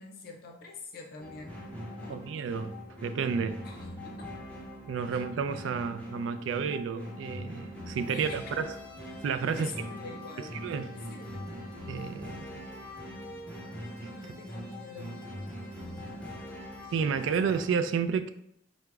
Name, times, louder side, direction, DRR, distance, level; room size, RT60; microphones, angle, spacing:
voice 1, 0.0-1.6 2.0-2.2 3.6-4.2 5.1-5.2 8.1-8.5 9.5-11.5 14.1-15.2, left 3 dB, 55° left, 0.5 m, -46 dB
sound 1, 1.2-17.7, equal, 5° left, 0.8 m, -42 dB
voice 2, 2.1-2.8 3.0-3.6 4.9-8.7 9.2-9.7 10.6-10.9 11.9-12.6 14.0-14.1 16.9-18.3, right 6 dB, 85° right, 0.3 m, -31 dB
4.7 x 2.0 x 3.3 m
head